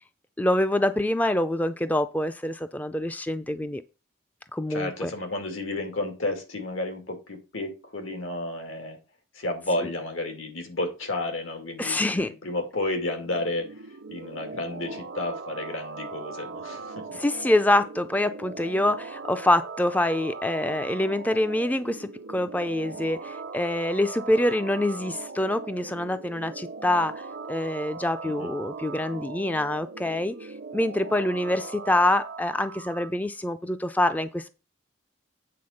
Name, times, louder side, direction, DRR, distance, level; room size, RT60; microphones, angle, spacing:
voice 1, 0.4-3.8 4.5-5.1 11.8-12.3 17.1-34.5, left 1 dB, 10° left, 0.3 m, -26 dB
voice 2, 4.7-9.0 9.3-13.8 14.1-17.2 28.2-28.5, left 2 dB, 90° left, 2.4 m, -32 dB
sound 1, 13.2-33.1, right 4 dB, 60° right, 0.6 m, -39 dB
8.6 x 4.0 x 6.4 m
head